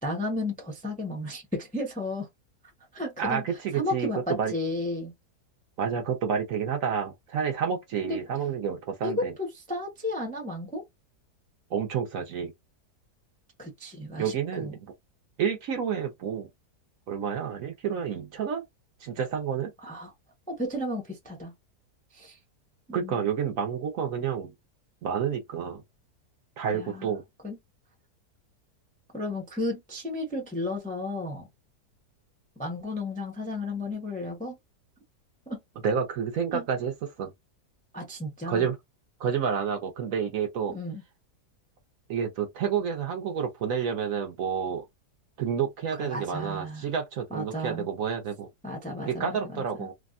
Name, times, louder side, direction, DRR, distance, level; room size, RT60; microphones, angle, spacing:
voice 1, 0.0-2.3 2.9-3.4 3.7-5.1 8.0-8.2 9.0-10.8 13.6-14.7 19.8-20.1 20.5-21.5 22.1-22.4 22.9-23.2 26.7-27.1 27.4-27.6 29.1-31.5 32.6-34.6 35.5-35.6 36.5-36.6 37.9-38.7 40.7-41.0 46.0-46.9 47.3-47.9 48.6-49.9, left 1 dB, 10° left, 0.5 m, -33 dB
voice 2, 3.2-4.5 5.8-9.3 11.7-12.5 14.2-14.9 15.4-16.5 17.1-18.6 19.0-19.7 22.9-24.5 25.0-25.8 26.6-27.2 35.8-37.3 38.5-38.8 39.2-40.7 42.1-44.8 45.4-48.5 49.1-49.9, right 7 dB, 65° right, 0.9 m, -29 dB
3.4 x 2.1 x 2.4 m
omnidirectional pair, 1.8 m